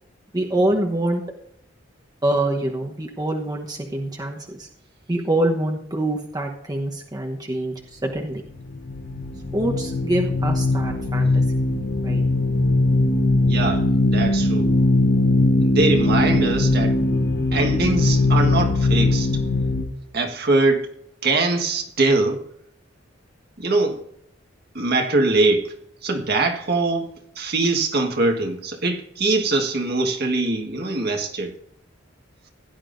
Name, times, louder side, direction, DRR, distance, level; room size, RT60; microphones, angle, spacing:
voice 1, 0.3-1.2 2.2-4.7 5.1-8.4 9.5-11.4 12.0-12.2, right 1 dB, 20° right, 1.1 m, -25 dB
sound 1, 8.6-19.8, left 2 dB, 55° left, 1.3 m, -20 dB
voice 2, 13.5-14.7 15.6-17.0 17.5-19.3 20.1-20.9 21.2-22.4 23.6-24.0 24.7-25.7 26.0-31.5, right 2 dB, 55° right, 1.7 m, -22 dB
16.5 x 11.0 x 2.7 m
head